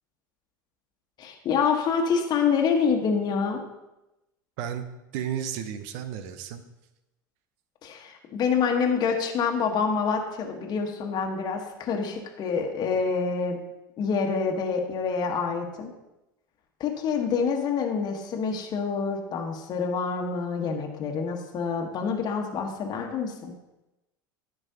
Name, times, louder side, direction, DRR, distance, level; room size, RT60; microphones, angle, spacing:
voice 1, 1.2-3.6 7.8-13.6 14.0-15.9 16.8-23.5, left 5 dB, 40° left, 2 dB, 1.4 m, -27 dB
voice 2, 4.6-6.6, right 9 dB, 55° right, 10 dB, 0.8 m, -33 dB
13.5 x 5.4 x 2.9 m, 0.97 s
figure-of-eight pair, 80°, 11 cm